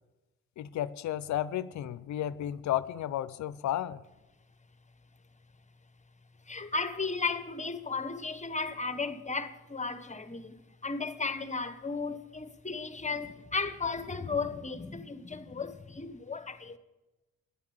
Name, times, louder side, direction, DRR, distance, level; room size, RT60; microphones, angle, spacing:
voice 1, 0.6-4.0, left 12 dB, 65° left, 0.6 m, -33 dB
voice 2, 6.5-16.8, left 4 dB, 25° left, 1.0 m, -35 dB
10.5 x 7.1 x 9.4 m
supercardioid pair, 55°, 31 cm